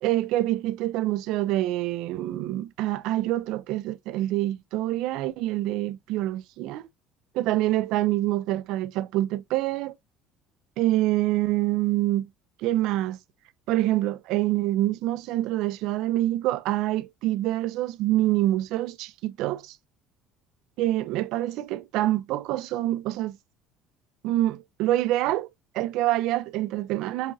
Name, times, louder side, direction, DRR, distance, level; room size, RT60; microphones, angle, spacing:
voice 1, 0.0-6.8 7.3-9.9 10.8-12.3 12.6-13.2 13.7-19.8 20.8-23.4 24.2-25.5 25.7-27.3, right 15 dB, 70° right, 0.3 m, -26 dB
5.4 x 2.6 x 2.2 m
supercardioid pair, 105°, 0 cm